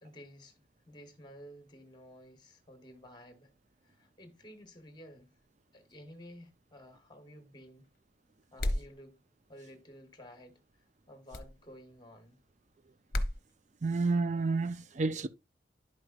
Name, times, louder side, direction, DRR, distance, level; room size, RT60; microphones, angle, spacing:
voice 1, 0.0-3.5 3.8-5.3 5.7-7.9 8.5-9.2 9.5-10.6 11.1-12.4, equal, 25° left, 1.2 m, -53 dB
sound 1, 8.6-8.9 11.3-11.5 13.1-13.4, left 1 dB, 55° left, 0.9 m, -31 dB
voice 2, 13.8-15.3, right 3 dB, 40° right, 0.5 m, -30 dB
11.5 x 4.8 x 2.5 m
head